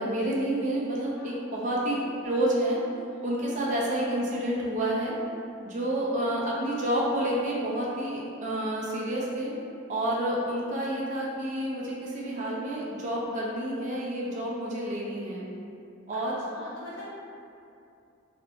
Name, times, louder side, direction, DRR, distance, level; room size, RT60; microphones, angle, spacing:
voice 1, 0.0-2.8 3.2-5.1 5.6-9.5 9.9-15.4 16.1-16.4, right 1 dB, 35° right, -4 dB, 0.3 m, -29 dB
voice 2, 3.1-3.4 4.0-4.5 6.5-6.7 12.1-12.5 16.1-16.2 16.5-17.1, equal, 65° left, -7 dB, 0.7 m, -45 dB
2.3 x 2.1 x 2.8 m, 2.6 s
head